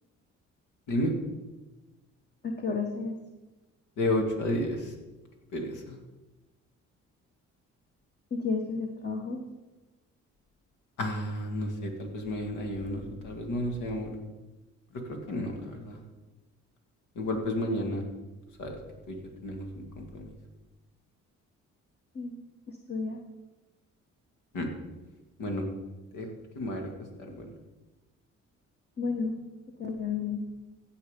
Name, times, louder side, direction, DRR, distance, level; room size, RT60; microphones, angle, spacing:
voice 1, 2.4-3.2 8.3-9.4 22.1-22.4 22.7-23.2 29.0-29.5 29.8-30.4, left 4 dB, 35° left, 3 dB, 1.2 m, -32 dB
voice 2, 4.0-4.9 5.5-5.9 11.0-14.1 15.3-16.0 17.2-18.0 18.6-18.8 19.1-19.2 19.4-20.3 24.5-24.7 25.4-25.6 26.1-26.3 26.5-26.9 27.2-27.4, left 1 dB, 85° left, 3 dB, 2.3 m, -31 dB
16.5 x 5.7 x 5.2 m, 1.1 s
cardioid pair, 90°, 30 cm